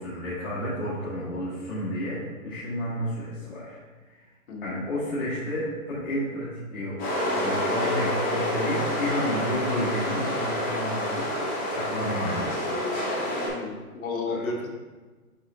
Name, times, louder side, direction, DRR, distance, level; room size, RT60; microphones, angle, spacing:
voice 1, 0.0-3.8 4.1-4.2 4.6-12.7 14.2-14.5, equal, 40° left, -11 dB, 1.8 m, -31 dB
voice 2, 4.5-4.8 13.4-14.7, left 3 dB, 65° left, 1 dB, 1.3 m, -33 dB
sound 1, 7.0-13.5, left 1 dB, 20° left, 1.5 m, -28 dB
9.3 x 3.7 x 2.7 m, 1.3 s
hypercardioid pair, 150°, 45 cm